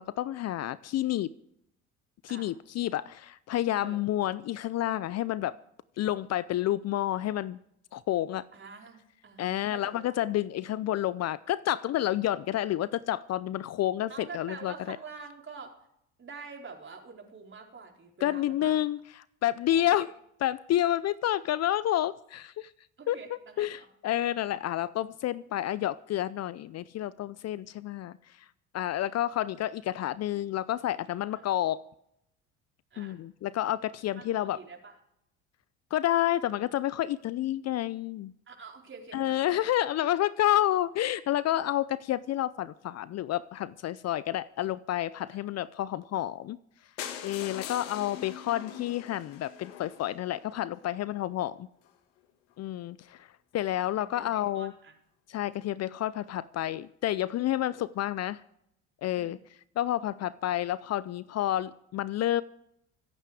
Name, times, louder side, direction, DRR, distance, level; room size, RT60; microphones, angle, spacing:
voice 1, 0.0-1.3 2.2-5.6 6.0-7.6 7.9-8.4 9.4-15.0 18.2-20.1 20.4-22.7 23.1-23.2 23.6-28.2 28.7-31.8 33.0-34.6 35.9-38.3 39.1-46.6 47.2-51.7 52.6-53.3 53.5-54.7 55.3-58.4 59.0-59.4 59.8-62.4, left 13 dB, 45° left, 19 dB, 0.6 m, -29 dB
voice 2, 8.5-9.0 9.2-10.4 14.1-15.7 16.2-18.7 19.7-20.1 23.0-23.9 32.9-33.2 34.1-35.0 38.5-39.7 45.3-45.4 47.4-47.6 54.0-54.9 59.1-59.3, right 5 dB, 30° right, 2 dB, 4.2 m, -46 dB
sound 1, 47.0-50.9 51.5-51.6 51.8-52.0 52.2-52.3 52.5-52.6, left 10 dB, 75° left, 1.8 m, -42 dB
25.0 x 9.0 x 4.9 m, 0.76 s
hypercardioid pair, 65°, 37 cm